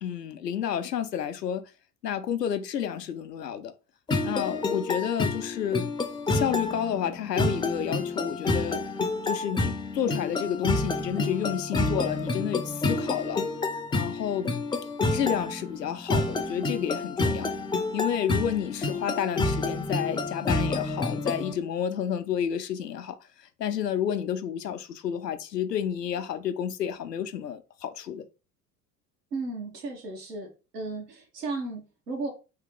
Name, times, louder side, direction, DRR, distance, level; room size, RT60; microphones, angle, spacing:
voice 1, 0.0-1.7 2.0-3.7 4.2-5.9 6.3-8.8 9.2-13.4 13.9-14.6 15.1-17.5 17.9-28.3, left 9 dB, 85° left, 0.6 m, -30 dB
sound 1, 4.1-21.5, left 3 dB, 10° left, 0.5 m, -29 dB
voice 2, 29.3-32.3, right 3 dB, 80° right, 1.2 m, -35 dB
3.1 x 2.9 x 3.7 m
figure-of-eight pair, 65°, 47 cm